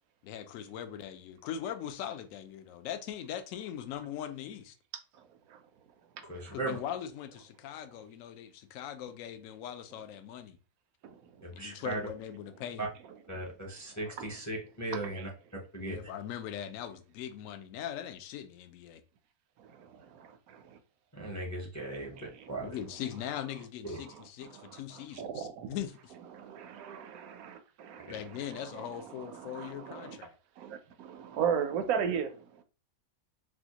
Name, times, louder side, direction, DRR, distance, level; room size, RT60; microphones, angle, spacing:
voice 1, 0.2-4.7 6.5-10.6 11.5-12.9 15.8-19.0 22.6-26.1 28.1-30.4, left 10 dB, 70° left, 0.9 m, -40 dB
voice 2, 6.3-6.8 11.4-12.0 12.8-12.9 13.3-15.3 15.7-16.0 21.1-22.1 22.5-22.7 23.9-24.0 28.1-28.2, right 2 dB, 20° left, 0.4 m, -37 dB
voice 3, 14.9-15.3 19.6-20.8 21.9-22.5 24.0-25.7 26.3-30.2 30.6-32.4, right 7 dB, 80° right, 1.0 m, -37 dB
4.2 x 2.3 x 2.8 m
omnidirectional pair, 1.5 m